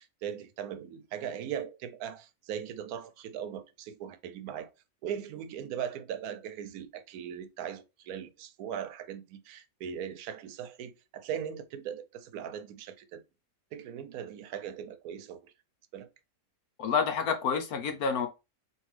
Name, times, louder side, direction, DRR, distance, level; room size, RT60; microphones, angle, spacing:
voice 1, 0.0-4.7 5.0-13.2 13.7-15.5 15.9-16.1, right 9 dB, 85° right, 1.1 m, -39 dB
voice 2, 16.8-18.3, left 6 dB, 85° left, 1.4 m, -28 dB
4.5 x 3.0 x 3.2 m
omnidirectional pair, 1.5 m